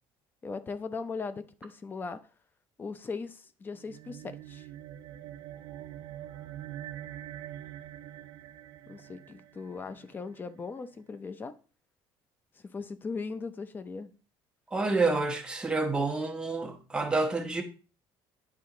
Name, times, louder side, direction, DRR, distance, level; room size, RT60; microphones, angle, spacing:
voice 1, 0.4-2.2 2.8-4.7 8.9-11.5 12.7-14.1, left 4 dB, 20° left, 0.6 m, -38 dB
sound 1, 3.7-10.4, right 12 dB, 65° right, 0.6 m, -45 dB
voice 2, 14.7-17.6, right 3 dB, 10° right, 1.0 m, -28 dB
9.6 x 4.2 x 3.8 m
cardioid pair, 155°, 9 cm